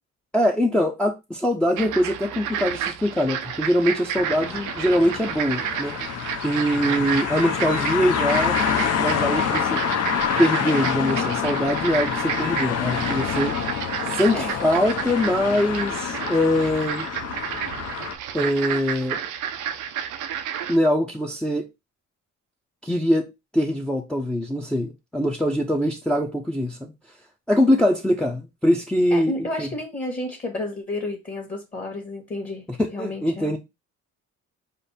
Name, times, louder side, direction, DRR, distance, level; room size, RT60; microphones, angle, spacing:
voice 1, 0.3-5.9 6.4-8.6 9.0-9.8 10.4-13.5 14.1-17.1 18.3-19.2 20.7-21.7 22.8-23.3 23.5-26.9 27.5-29.7 32.7-33.6, equal, 5° left, 0.6 m, -23 dB
sound 1, 1.8-20.8, right 9 dB, 85° right, 0.6 m, -31 dB
sound 2, 4.1-18.1, left 7 dB, 55° left, 0.7 m, -27 dB
voice 2, 29.1-32.7 32.9-33.6, left 1 dB, 25° left, 1.3 m, -31 dB
5.2 x 2.0 x 4.0 m
cardioid pair, 90°, 30 cm